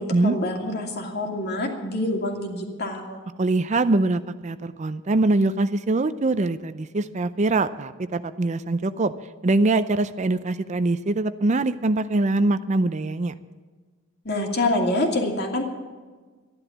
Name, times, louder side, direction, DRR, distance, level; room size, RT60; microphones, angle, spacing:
voice 1, 0.0-3.2 14.2-15.6, left 1 dB, 55° left, 2 dB, 2.6 m, -26 dB
voice 2, 3.4-9.1 9.4-13.3, right 2 dB, 35° right, 13 dB, 0.5 m, -23 dB
13.0 x 11.0 x 7.2 m, 1.4 s
head